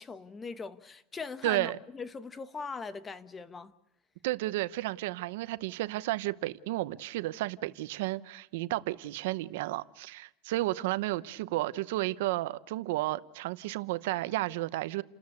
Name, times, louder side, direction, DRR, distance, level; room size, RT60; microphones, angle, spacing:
voice 1, 0.0-3.7, left 4 dB, 20° left, 1.0 m, -40 dB
voice 2, 1.4-1.8 4.2-15.0, right 17 dB, 85° right, 0.8 m, -32 dB
30.0 x 13.5 x 8.3 m
supercardioid pair, 145°, 0 cm